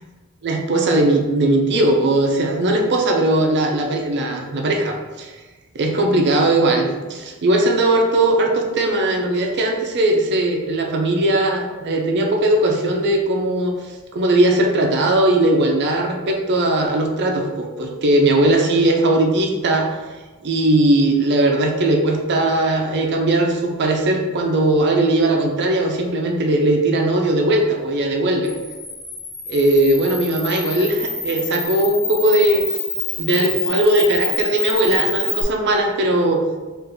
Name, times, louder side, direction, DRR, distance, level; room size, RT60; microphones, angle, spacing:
voice 1, 0.4-5.3 5.7-13.7 14.1-20.0 20.4-28.5 29.5-32.8 33.2-36.4, right 1 dB, 50° right, 2 dB, 0.5 m, -18 dB
Camera, 28.4-35.4, left 3 dB, 80° left, 1.2 m, -27 dB
3.4 x 2.5 x 3.7 m, 1.2 s
head